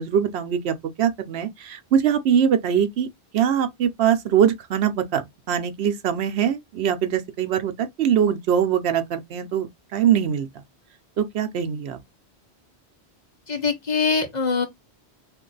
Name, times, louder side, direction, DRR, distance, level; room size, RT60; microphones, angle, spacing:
voice 1, 0.0-3.1 3.3-9.7 9.9-10.5 11.2-12.0, right 8 dB, 75° right, 0.9 m, -22 dB
voice 2, 13.5-14.7, left 5 dB, 45° left, 0.9 m, -23 dB
3.0 x 2.5 x 3.8 m
omnidirectional pair, 1.1 m